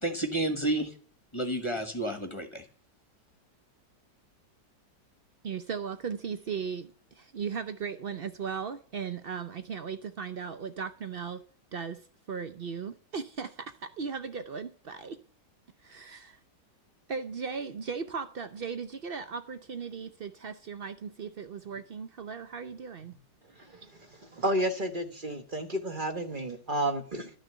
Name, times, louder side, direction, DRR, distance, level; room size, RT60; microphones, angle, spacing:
voice 1, 0.0-0.9 1.3-2.7, right 2 dB, 20° left, 1.2 m, -30 dB
voice 2, 5.4-11.4 11.7-15.2 15.8-16.4 17.1-23.2, right 6 dB, 85° right, 0.5 m, -37 dB
voice 3, 24.3-27.3, right 1 dB, 35° right, 1.0 m, -31 dB
12.0 x 6.5 x 9.2 m
omnidirectional pair, 2.0 m